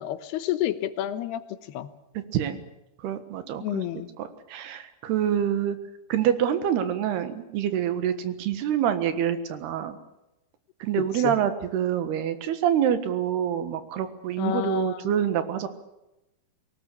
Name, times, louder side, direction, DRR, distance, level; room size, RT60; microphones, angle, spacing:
voice 1, 0.0-1.9 3.6-4.1 11.0-11.4 14.4-15.1, left 13 dB, 85° left, 3.1 m, -30 dB
voice 2, 2.2-2.6 3.0-3.8 4.2-5.8 6.1-10.0 10.8-15.7, right 9 dB, 85° right, 3.6 m, -26 dB
22.5 x 18.5 x 8.4 m
omnidirectional pair, 4.5 m